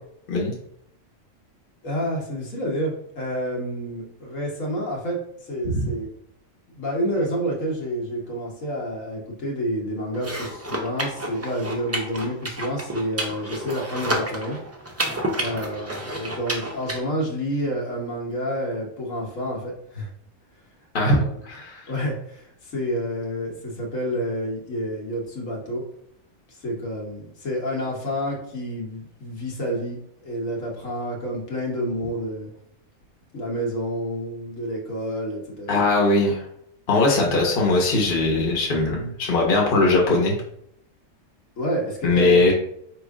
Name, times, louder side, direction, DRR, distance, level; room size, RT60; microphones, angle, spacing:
voice 1, 1.8-6.1 6.7-14.6 15.4-20.1 21.0-21.3 21.9-25.8 26.5-32.5 33.3-35.8 41.6-42.5, equal, 75° left, -2 dB, 1.5 m, -29 dB
sound 1, 10.1-17.0, right 1 dB, 25° right, 0.3 m, -30 dB
voice 2, 20.9-21.8 35.7-36.4 36.9-40.4 42.0-42.5, left 2 dB, 45° left, -1 dB, 1.1 m, -20 dB
4.6 x 3.1 x 3.5 m, 0.71 s
omnidirectional pair, 1.4 m